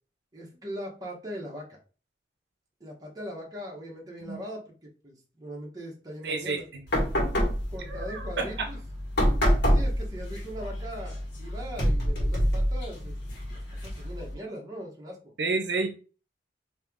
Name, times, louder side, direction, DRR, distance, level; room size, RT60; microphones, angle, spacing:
voice 1, 0.3-1.8 2.8-4.7 5.0-6.6 7.7-8.8 9.7-13.2 13.5-15.3, equal, 20° right, -2 dB, 1.1 m, -40 dB
voice 2, 6.2-6.8 7.9-8.7 15.4-15.9, right 3 dB, 70° right, 3 dB, 0.7 m, -30 dB
sound 1, 6.9-14.3, equal, 70° left, 1.5 m, -27 dB
3.3 x 2.9 x 3.5 m, 0.36 s
head